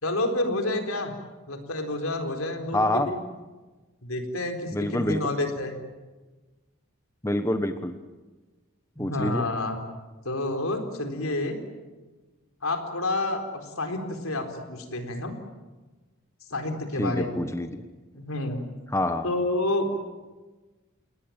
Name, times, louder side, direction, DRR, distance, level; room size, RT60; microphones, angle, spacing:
voice 1, 0.0-1.1 1.5-3.2 4.0-5.8 9.0-9.8 10.2-11.6 12.6-15.3 16.5-17.4 18.1-18.6 19.2-20.1, left 2 dB, 75° left, 6 dB, 4.2 m, -29 dB
voice 2, 2.7-3.1 4.7-5.2 7.2-8.0 9.0-9.5 17.0-17.8 18.9-19.3, left 1 dB, 15° left, 8 dB, 1.1 m, -26 dB
28.5 x 19.5 x 9.0 m, 1.2 s
head